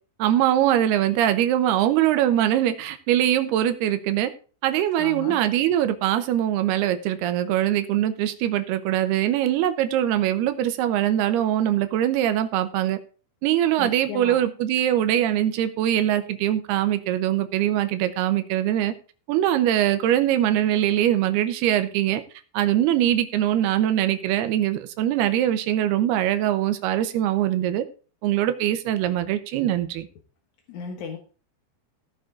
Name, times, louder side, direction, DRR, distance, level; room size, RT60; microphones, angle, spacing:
voice 1, 0.2-4.3 4.6-13.0 13.4-18.9 19.3-22.2 22.5-27.8 28.2-30.1, right 12 dB, 75° right, 10 dB, 2.8 m, -22 dB
voice 2, 5.0-5.4 13.8-14.4 30.7-31.2, left 6 dB, 65° left, 3 dB, 2.1 m, -35 dB
16.5 x 6.1 x 3.8 m, 0.37 s
omnidirectional pair, 4.9 m